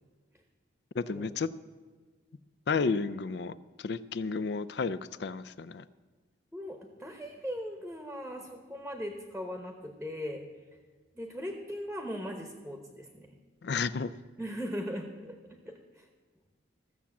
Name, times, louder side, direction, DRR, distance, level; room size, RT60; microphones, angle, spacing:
voice 1, 0.9-1.5 2.7-5.8 13.6-14.1, left 4 dB, 55° left, 16 dB, 0.4 m, -32 dB
voice 2, 6.5-10.4 11.1-13.4 14.4-16.1, equal, 5° right, 4 dB, 0.9 m, -39 dB
14.5 x 7.1 x 7.2 m, 1.4 s
head